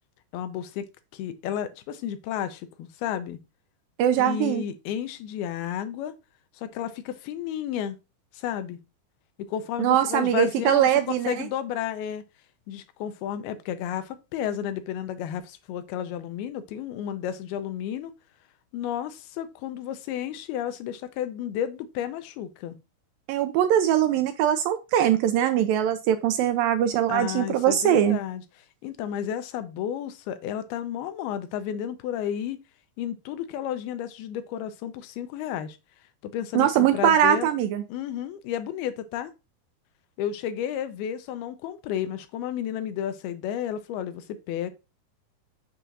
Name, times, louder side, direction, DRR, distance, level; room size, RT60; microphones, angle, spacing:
voice 1, 0.3-0.9 1.1-3.4 4.2-6.1 6.5-8.0 8.3-8.8 9.4-12.2 12.7-18.1 18.7-22.8 27.1-32.6 33.0-35.8 36.2-37.5 37.9-39.3 40.2-44.7, left 10 dB, 85° left, 2.6 m, -32 dB
voice 2, 4.0-4.6 9.8-11.4 23.3-28.2 36.5-37.8, right 10 dB, 80° right, 2.1 m, -22 dB
6.7 x 6.2 x 2.5 m
omnidirectional pair, 4.4 m